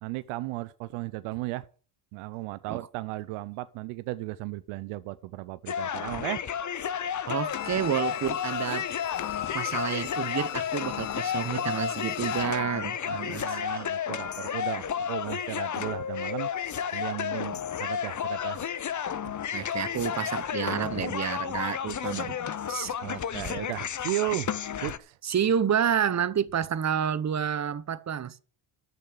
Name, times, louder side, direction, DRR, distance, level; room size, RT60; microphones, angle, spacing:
voice 1, 0.0-1.7 2.1-6.4 13.0-16.5 16.9-18.6 23.0-24.6 24.8-25.2, right 18 dB, 80° right, 0.7 m, -35 dB
sound 1, 5.7-25.0, left 8 dB, 35° left, 0.9 m, -32 dB
voice 2, 7.3-8.9 9.5-13.8 14.4-14.5 19.5-22.4 22.6-22.9 25.2-28.4, right 8 dB, 35° right, 0.9 m, -29 dB
Bowed string instrument, 7.4-12.6 12.9-13.0, left 14 dB, 65° left, 1.0 m, -38 dB
12.0 x 6.7 x 7.4 m
supercardioid pair, 65°, 49 cm